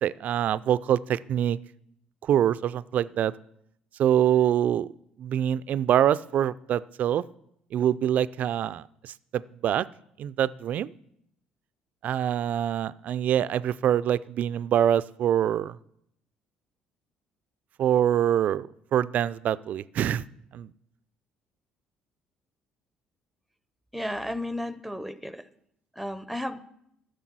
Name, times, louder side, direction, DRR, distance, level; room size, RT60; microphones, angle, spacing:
voice 1, 0.0-1.6 2.2-3.3 4.0-4.9 5.2-7.2 7.7-9.9 10.2-10.9 12.0-15.8 17.8-20.2 20.5-20.7, right 10 dB, 60° right, 18 dB, 0.3 m, -25 dB
voice 2, 23.9-25.5 25.9-26.6, left 1 dB, ahead, 14 dB, 0.7 m, -33 dB
11.0 x 6.7 x 6.1 m, 0.75 s
supercardioid pair, 65°, 3 cm